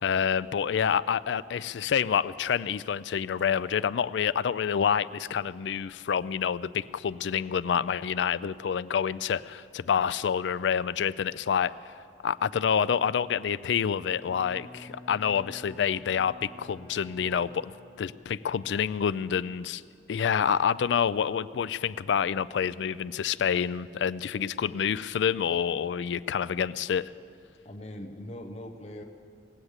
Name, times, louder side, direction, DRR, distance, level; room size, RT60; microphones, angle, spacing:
voice 1, 0.0-11.7 12.2-19.8 20.1-27.1, left 7 dB, 80° left, 17 dB, 0.4 m, -28 dB
Bowed string instrument, 13.9-18.1, left 1 dB, 10° left, 2.4 m, -49 dB
voice 2, 27.6-29.0, left 1 dB, 35° left, 3 dB, 0.7 m, -41 dB
19.0 x 8.7 x 8.0 m, 2.4 s
head